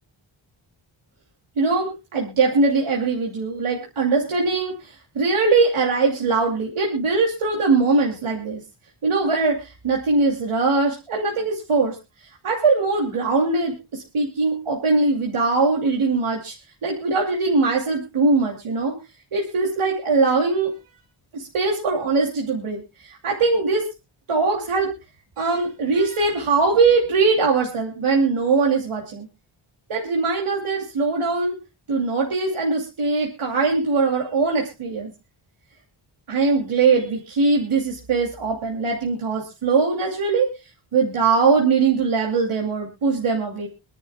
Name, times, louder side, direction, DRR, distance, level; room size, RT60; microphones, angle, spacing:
voice 1, 1.6-8.6 9.0-12.0 12.4-16.5 16.8-19.0 19.3-20.7 21.3-23.8 24.3-24.9 25.4-29.3 29.9-31.6 31.9-35.1 36.3-40.5 40.9-43.7, right 4 dB, 80° right, 0 dB, 2.7 m, -21 dB
26.5 x 10.5 x 2.2 m, 0.28 s
wide cardioid pair, 175°, 49 cm